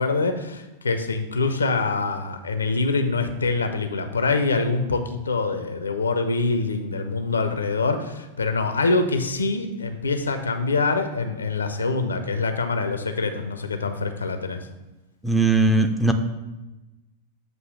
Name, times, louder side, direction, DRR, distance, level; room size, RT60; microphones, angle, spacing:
voice 1, 0.0-14.7, left 3 dB, 75° left, 7 dB, 0.5 m, -25 dB
voice 2, 15.2-16.1, right 2 dB, ahead, 5 dB, 0.5 m, -19 dB
7.7 x 2.8 x 5.3 m, 1.1 s
figure-of-eight pair, 90°, 0 cm